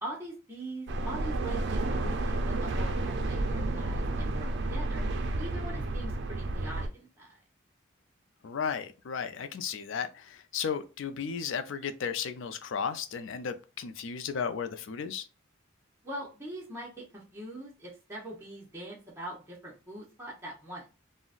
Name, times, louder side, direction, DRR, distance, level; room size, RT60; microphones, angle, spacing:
voice 1, 0.0-5.0 5.4-7.4 16.0-20.9, right 1 dB, 10° right, 0.7 m, -42 dB
sound 1, 0.9-6.9, right 2 dB, 55° right, 0.4 m, -31 dB
voice 2, 8.4-15.3, left 6 dB, 65° left, 0.4 m, -34 dB
3.8 x 2.1 x 2.4 m
head